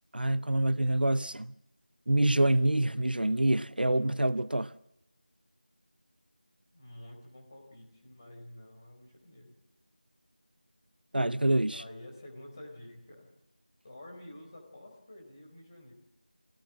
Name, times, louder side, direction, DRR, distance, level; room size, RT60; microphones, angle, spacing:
voice 1, 0.1-1.5 2.1-4.7 11.1-11.8, right 1 dB, 75° right, 0.8 m, -26 dB
voice 2, 6.7-9.5 11.7-13.3 13.8-15.9, left 1 dB, 25° left, 4.4 m, -49 dB
25.5 x 17.5 x 7.6 m
figure-of-eight pair, 175°, 5 cm